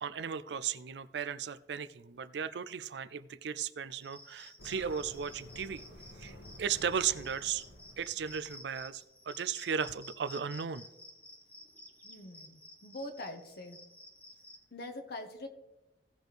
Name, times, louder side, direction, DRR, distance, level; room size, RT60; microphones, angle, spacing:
voice 1, 0.0-5.8 6.2-7.6 8.0-10.9, right 7 dB, 70° right, 14 dB, 0.4 m, -36 dB
Cricket, 4.0-14.6, left 1 dB, 10° left, 1.5 m, -53 dB
sound 1, 4.6-8.8, left 1 dB, 85° left, 1.7 m, -52 dB
voice 2, 12.0-13.8 14.7-15.5, left 1 dB, 60° left, 5 dB, 1.3 m, -44 dB
16.5 x 6.2 x 3.4 m, 1.0 s
head